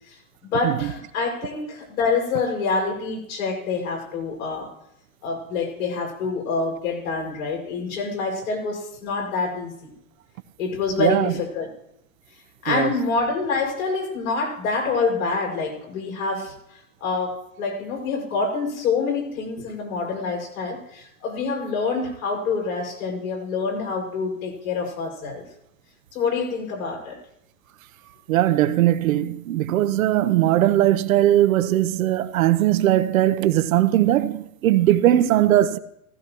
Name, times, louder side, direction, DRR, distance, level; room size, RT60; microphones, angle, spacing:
voice 1, 0.4-4.7 5.2-9.9 10.6-11.7 12.6-16.5 17.0-25.4 26.1-27.2, left 4 dB, 70° left, 6.1 m, -26 dB
voice 2, 11.0-11.3 12.7-12.9 28.3-35.8, right 13 dB, 70° right, 0.9 m, -19 dB
15.5 x 15.5 x 3.1 m
hypercardioid pair, 140°, 43 cm